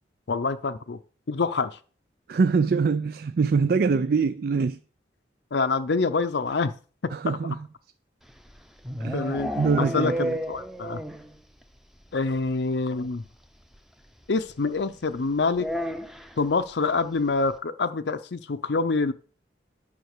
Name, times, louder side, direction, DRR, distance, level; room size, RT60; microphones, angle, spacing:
voice 1, 0.3-1.0 1.3-1.8 5.5-6.7 7.3-7.4 9.1-9.5 9.8-10.1 10.5-11.0 12.1-13.2 14.3-15.7 16.4-19.1, left 4 dB, 70° left, 0.6 m, -26 dB
voice 2, 2.3-4.8 7.1-7.7 9.0-10.4, right 5 dB, 55° right, 0.4 m, -24 dB
sound 1, 8.3-11.4 11.6-11.7 12.0-12.1 12.4-12.5 13.7-13.8 15.5-16.4, equal, ahead, 0.7 m, -32 dB
9.4 x 5.7 x 6.6 m
head